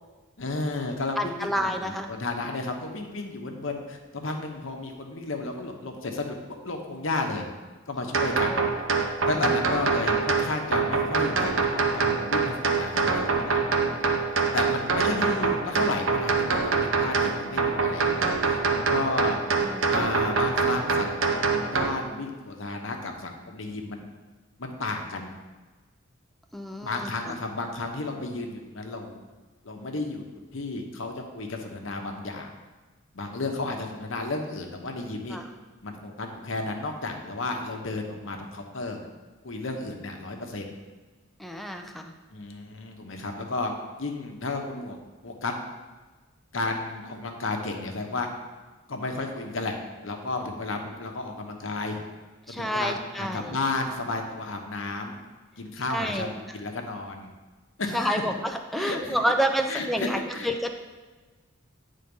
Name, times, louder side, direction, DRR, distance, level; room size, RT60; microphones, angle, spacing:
voice 1, 0.4-6.4 6.6-7.4 7.9-8.6 9.3-13.6 14.5-19.4 19.9-24.1 24.6-25.4 26.8-29.1 29.6-30.2 30.5-32.5 33.1-35.4 35.8-39.0 39.4-40.6 42.3-45.0 45.2-45.6 46.5-48.3 48.9-52.0 52.5-55.1 55.6-57.3 57.8-58.2 58.8-59.2 59.7-60.5, left 2 dB, 65° left, 3 dB, 1.0 m, -32 dB
voice 2, 1.2-2.1 8.5-8.7 9.8-9.9 15.0-15.1 19.6-19.9 26.5-27.3 35.3-35.4 41.4-42.1 52.5-53.5 55.9-56.3 57.9-60.7, equal, ahead, 4 dB, 0.5 m, -29 dB
sound 1, 8.1-21.9, right 4 dB, 70° right, 0.8 m, -25 dB
9.2 x 3.8 x 5.4 m, 1.3 s
head